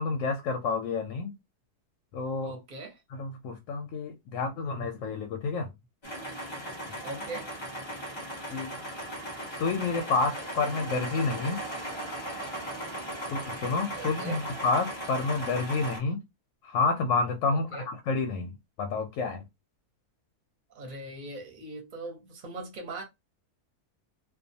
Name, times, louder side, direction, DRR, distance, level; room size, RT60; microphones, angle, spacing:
voice 1, 0.0-1.3 2.1-2.5 3.1-5.7 8.5-8.7 9.6-11.6 13.3-16.2 16.6-19.4, left 4 dB, 70° left, 0.8 m, -29 dB
voice 2, 2.4-3.0 7.0-7.5 13.9-14.5 17.5-17.8 20.7-23.0, right 2 dB, 40° right, 0.8 m, -40 dB
sound 1, 6.0-16.0, right 1 dB, 35° left, 0.4 m, -37 dB
2.4 x 2.3 x 2.6 m
omnidirectional pair, 1.6 m